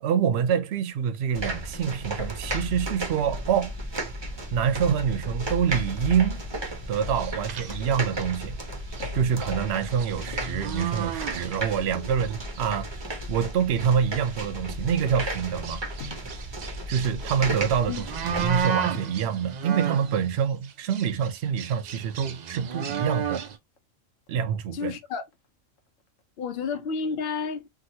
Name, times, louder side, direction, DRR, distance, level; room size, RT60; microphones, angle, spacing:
voice 1, 0.0-3.7 4.5-6.4 6.9-8.6 9.1-12.9 13.3-15.8 16.9-23.4 24.3-24.9, right 7 dB, 65° right, 0.8 m, -26 dB
sound 1, 1.3-18.6, right 1 dB, 30° right, 0.5 m, -34 dB
sound 2, 7.0-8.4 8.9-9.1 9.4-12.0 12.2-12.7 13.3-13.4 13.8-13.9 14.2-14.4 15.1-20.3 20.6-23.6, right 7 dB, 85° right, 0.3 m, -34 dB
sound 3, 9.0-9.4 10.1-10.7 11.9-12.3 13.0-15.4 16.0-16.4 17.5-17.9 18.6-18.7 18.9-19.3 20.4-21.0 21.3-21.4 21.6-21.7 22.1-22.5 22.8-23.8 24.3-24.7 25.1-26.2 26.5-26.6, left 4 dB, 85° left, 1.1 m, -46 dB
voice 2, 24.7-25.2 26.4-27.7, left 5 dB, 60° left, 0.8 m, -31 dB
2.9 x 2.6 x 2.7 m
omnidirectional pair, 1.3 m